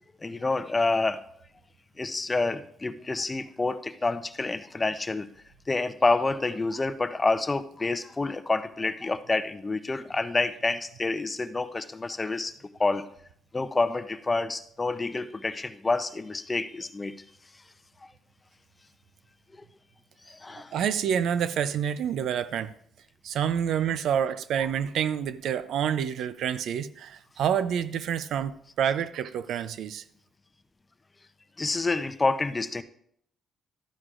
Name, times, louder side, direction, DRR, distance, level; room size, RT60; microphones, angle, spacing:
voice 1, 0.2-1.2 2.0-5.3 5.7-12.5 12.8-13.0 13.5-17.1 20.3-20.7 31.6-32.8, left 3 dB, 25° left, 11 dB, 0.6 m, -28 dB
voice 2, 20.7-22.7 23.2-30.0, right 8 dB, 75° right, 14 dB, 0.5 m, -28 dB
13.0 x 9.6 x 2.5 m, 0.68 s
cardioid pair, 90°, 0 cm